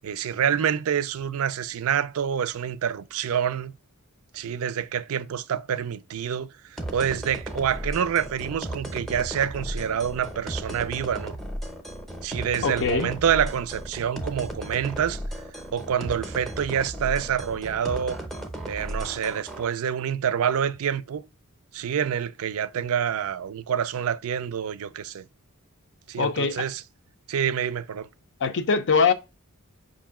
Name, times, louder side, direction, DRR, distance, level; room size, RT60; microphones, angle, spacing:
voice 1, 0.0-3.7 4.3-11.3 12.2-15.2 15.7-18.2 18.7-21.2 21.7-25.3 26.1-26.8 27.3-28.1, right 8 dB, 70° right, 0.4 m, -27 dB
sound 1, 6.8-19.7, right 1 dB, ahead, 0.7 m, -35 dB
voice 2, 12.6-13.1 26.2-26.6 28.4-29.1, left 5 dB, 55° left, 0.5 m, -22 dB
5.6 x 2.6 x 3.6 m
head